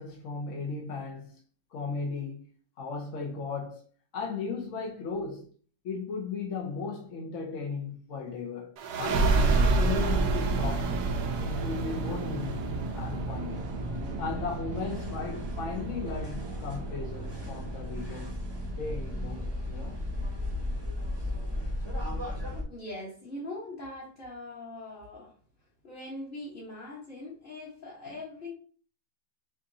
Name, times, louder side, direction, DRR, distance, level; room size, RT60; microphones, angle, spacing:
voice 1, 0.0-1.4 1.7-2.5 2.8-3.8 4.1-5.5 5.8-8.7 9.0-11.0 11.4-13.6 14.2-18.3 18.8-20.0 21.5-21.7, left 4 dB, 60° left, 1.0 m, -36 dB
sound 1, 8.8-20.0, right 3 dB, 80° right, 1.3 m, -30 dB
sound 2, 11.7-22.6, left 1 dB, 20° right, 0.8 m, -36 dB
voice 2, 22.7-25.4 25.8-28.5, left 2 dB, 35° left, 1.3 m, -41 dB
6.2 x 2.5 x 2.7 m
omnidirectional pair, 1.7 m